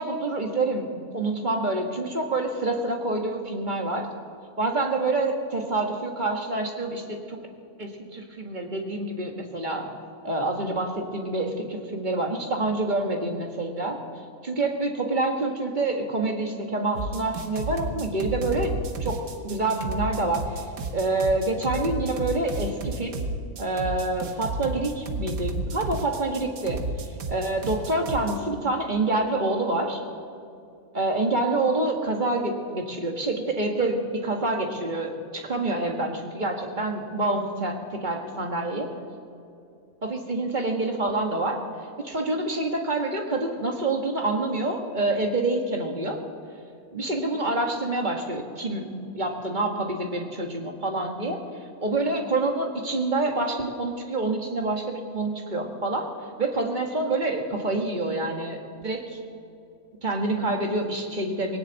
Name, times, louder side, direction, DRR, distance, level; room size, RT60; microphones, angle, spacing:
voice 1, 0.0-4.1 4.6-7.4 7.8-9.8 10.2-14.0 14.4-18.7 19.0-19.2 19.4-20.7 20.9-23.2 23.6-26.8 27.3-30.0 30.9-38.9 40.0-41.6 42.0-46.2 46.9-48.9 49.1-51.4 51.8-56.1 56.4-59.2 60.0-61.6, right 2 dB, 35° right, 2 dB, 1.8 m, -27 dB
sound 1, 16.9-28.4, right 2 dB, 75° right, 1.7 m, -32 dB
19.5 x 18.0 x 4.1 m, 2.6 s
omnidirectional pair, 1.5 m